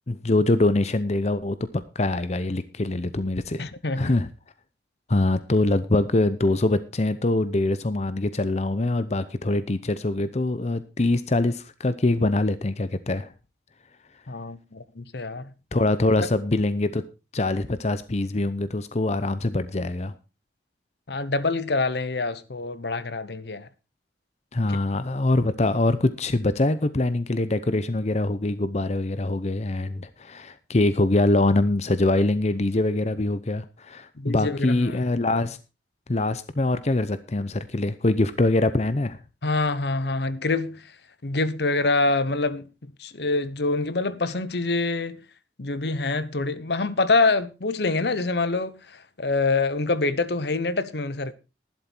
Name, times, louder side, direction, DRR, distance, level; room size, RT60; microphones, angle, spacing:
voice 1, 0.1-3.7 4.0-4.3 5.1-13.3 15.7-17.0 17.3-20.1 24.5-35.6 36.1-39.2, left 2 dB, 40° left, 0.7 m, -24 dB
voice 2, 3.6-4.2 14.3-15.5 21.1-23.7 34.2-35.0 39.4-40.9 41.2-42.7 43.0-45.2 45.6-51.3, left 3 dB, 65° left, 0.9 m, -25 dB
11.5 x 11.5 x 4.4 m
head